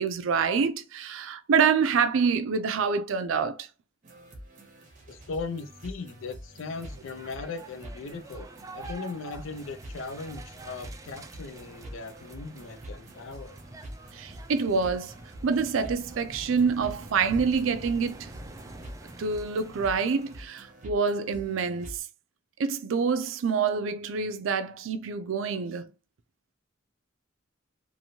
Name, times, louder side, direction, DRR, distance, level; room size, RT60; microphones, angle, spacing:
voice 1, 0.0-3.7 14.1-15.1 15.4-18.3 19.2-22.0 22.6-25.9, right 5 dB, 85° right, 0.4 m, -26 dB
sound 1, 4.0-22.0, equal, 40° right, 0.8 m, -46 dB
voice 2, 5.1-8.5 8.7-13.6, left 4 dB, 75° left, 0.4 m, -38 dB
sound 2, 6.7-20.5, right 2 dB, 15° right, 0.3 m, -46 dB
2.9 x 2.6 x 2.7 m
head